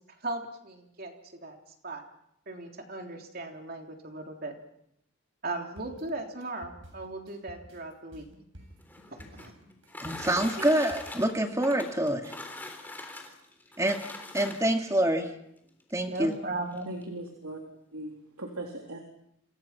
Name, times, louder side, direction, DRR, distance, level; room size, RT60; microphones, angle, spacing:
voice 1, 0.2-1.6 1.8-2.0 2.5-4.5 5.4-8.3 9.1-9.5 10.6-10.7 16.1-16.9, right 2 dB, 45° right, 3 dB, 3.4 m, -37 dB
sound 1, 5.8-11.0, equal, 60° right, 7.8 m, -51 dB
sound 2, 8.7-14.9 15.8-15.9 16.3-16.4 16.7-17.1, left 2 dB, 10° left, 3.5 m, -42 dB
voice 2, 10.0-12.3 13.8-14.0 14.3-15.3 15.9-16.3, right 1 dB, 15° right, 4 dB, 2.3 m, -26 dB
voice 3, 16.9-17.6 17.9-19.0, right 2 dB, 90° right, 1 dB, 3.7 m, -39 dB
30.0 x 26.5 x 5.9 m, 0.77 s
head